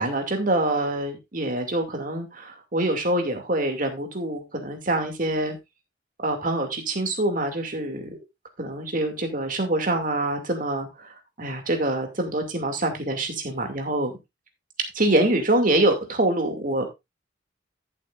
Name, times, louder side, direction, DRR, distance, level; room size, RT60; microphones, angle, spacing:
voice 1, 0.0-5.6 6.2-8.0 8.6-11.1 11.4-14.1 14.9-16.9, right 1 dB, 45° right, 5 dB, 2.4 m, -25 dB
14.0 x 7.6 x 2.5 m, 0.22 s
head